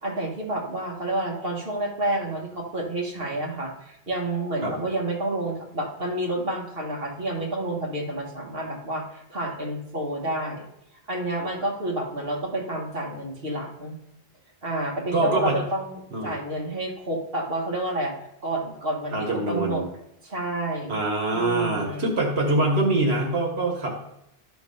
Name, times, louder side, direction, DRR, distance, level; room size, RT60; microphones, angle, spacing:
voice 1, 0.0-10.7 11.1-14.0 14.6-18.1 18.4-19.8 20.2-21.0 21.3-22.1, right 1 dB, 65° right, -1 dB, 1.9 m, -29 dB
voice 2, 15.1-15.6 16.1-16.3 19.1-19.8 20.9-23.9, right 2 dB, 90° right, 0 dB, 1.7 m, -24 dB
12.5 x 4.4 x 5.5 m, 0.81 s
omnidirectional pair, 1.0 m